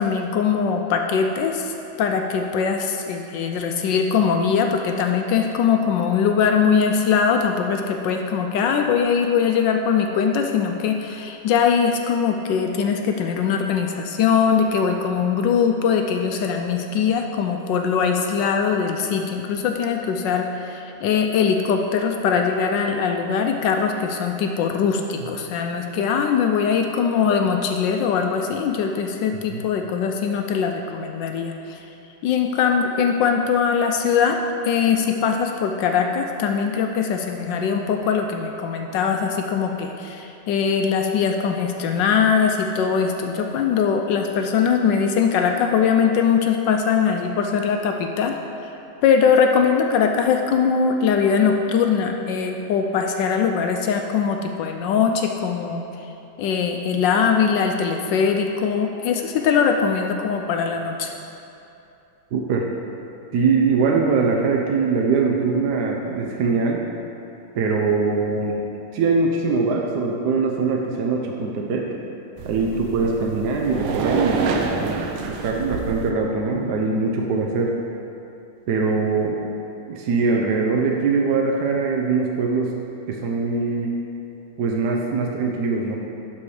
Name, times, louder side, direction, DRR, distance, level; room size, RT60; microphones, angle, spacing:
voice 1, 0.0-31.9 32.2-34.4 34.6-48.4 48.6-48.7 49.0-55.8 56.4-61.1, left 6 dB, 75° left, 4 dB, 1.1 m, -21 dB
voice 2, 62.3-62.7 63.3-66.8 67.5-68.6 68.9-71.9 72.4-77.7 78.7-79.4 79.9-82.7 83.1-84.0 84.6-86.0, right 4 dB, 65° right, 0 dB, 1.1 m, -22 dB
sound 1, 72.4-76.1, right 4 dB, 90° right, 1.5 m, -27 dB
11.5 x 4.3 x 4.8 m, 2.8 s
omnidirectional pair, 2.2 m